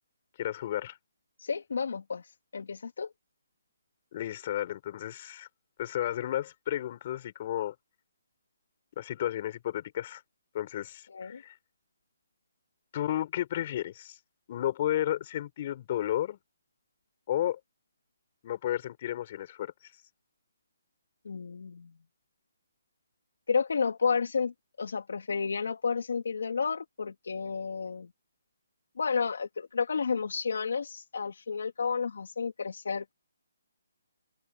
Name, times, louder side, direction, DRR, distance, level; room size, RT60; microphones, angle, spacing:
voice 1, 0.4-1.0 4.1-5.5 5.8-7.8 9.0-10.2 10.5-11.5 12.9-14.2 14.5-16.4 17.3-17.6 18.4-19.7, left 12 dB, 25° left, 5.8 m, -32 dB
voice 2, 1.4-2.2 2.5-3.1 11.1-11.4 21.2-21.9 23.5-28.1 29.0-33.1, left 5 dB, 60° left, 2.8 m, -31 dB
hypercardioid pair, 175°, 0 cm